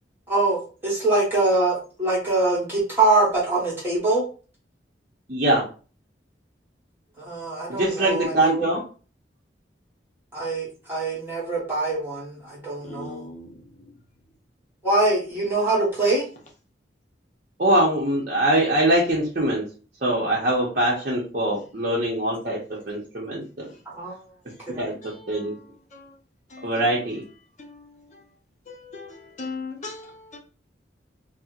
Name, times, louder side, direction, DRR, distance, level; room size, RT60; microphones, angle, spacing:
voice 1, 0.3-4.2 7.3-8.7 10.3-13.2 14.8-16.2 23.9-24.1 24.7-24.8, right 2 dB, 10° right, 1.2 m, -23 dB
voice 2, 5.3-5.7 7.7-8.8 17.6-19.6 20.0-23.7 24.8-25.5 26.6-27.2, right 1 dB, 45° right, 0.8 m, -23 dB
voice 3, 12.8-13.6 25.0-25.6 25.9-26.1 26.5-26.9 27.6-28.2 28.7-30.4, left 3 dB, 40° left, 0.7 m, -39 dB
4.2 x 2.1 x 2.4 m
head